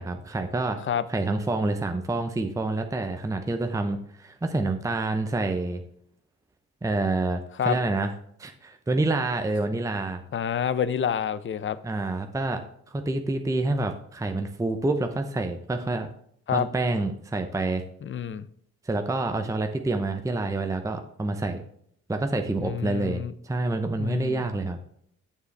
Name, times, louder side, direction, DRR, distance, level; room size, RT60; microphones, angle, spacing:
voice 1, 0.0-0.8 1.1-5.8 6.8-8.1 8.4-10.2 11.8-16.1 16.5-17.8 18.8-21.7 22.1-24.8, right 2 dB, 10° right, 6 dB, 0.8 m, -28 dB
voice 2, 10.3-11.8 16.5-16.7 18.0-18.5 22.6-23.3 24.0-24.5, left 8 dB, 35° left, 15 dB, 0.6 m, -28 dB
6.9 x 6.9 x 3.4 m, 0.67 s
supercardioid pair, 65°, 34 cm